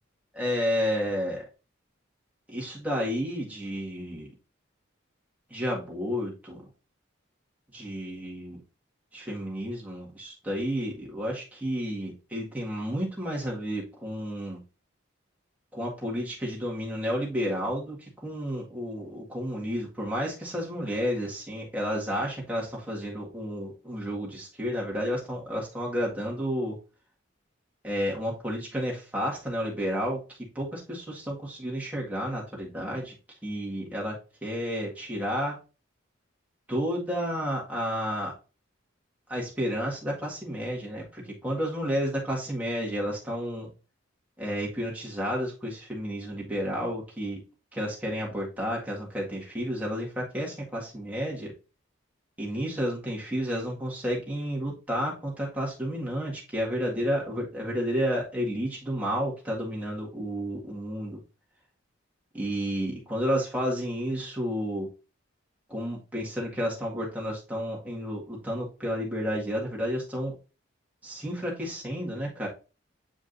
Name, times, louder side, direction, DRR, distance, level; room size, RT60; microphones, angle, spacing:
voice 1, 0.4-1.4 2.5-4.3 5.5-6.6 7.7-8.6 9.1-14.6 15.7-26.8 27.8-30.2 30.6-33.1 33.4-34.1 34.4-35.6 36.7-38.3 39.3-43.7 44.4-47.4 47.7-51.5 52.4-61.2 62.3-64.9 65.7-70.3 71.0-72.5, equal, 10° right, -4 dB, 1.9 m, -31 dB
7.9 x 5.0 x 2.6 m, 0.32 s
head